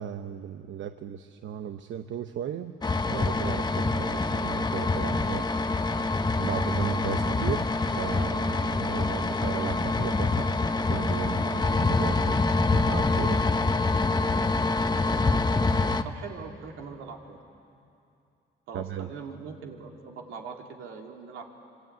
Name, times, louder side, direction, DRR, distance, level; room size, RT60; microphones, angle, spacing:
voice 1, 0.0-2.7 3.0-5.5 6.4-12.4 12.7-13.4 18.7-19.1, right 9 dB, 70° right, 8 dB, 0.9 m, -36 dB
sound 1, 2.8-16.0, left 3 dB, 20° left, 1.1 m, -26 dB
voice 2, 14.9-17.4 18.7-21.5, right 5 dB, 90° right, 1 dB, 2.9 m, -43 dB
25.5 x 24.0 x 9.4 m, 2.6 s
cardioid pair, 90°, 20 cm